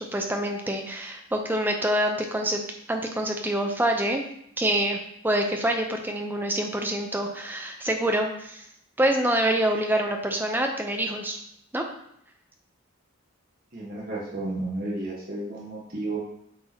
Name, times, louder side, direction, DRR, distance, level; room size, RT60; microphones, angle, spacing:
voice 1, 0.0-2.6 2.9-4.2 4.6-5.0 5.2-8.7 9.0-11.4 11.7-11.8, right 1 dB, 10° right, 2 dB, 0.7 m, -26 dB
voice 2, 13.7-16.2, right 2 dB, 45° right, -5 dB, 1.5 m, -32 dB
8.5 x 4.7 x 2.9 m, 0.73 s
head